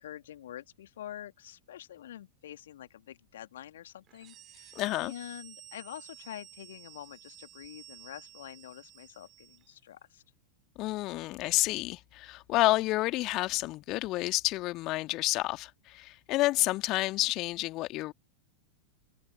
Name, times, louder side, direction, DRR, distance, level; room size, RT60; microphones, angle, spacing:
voice 1, 0.0-10.2, left 12 dB, 60° left, 2.4 m, -46 dB
sound 1, 4.1-9.8, right 12 dB, 30° right, 4.3 m, -53 dB
voice 2, 4.8-5.1 10.8-18.1, left 19 dB, 40° left, 1.9 m, -29 dB
figure-of-eight pair, 90°, 0 cm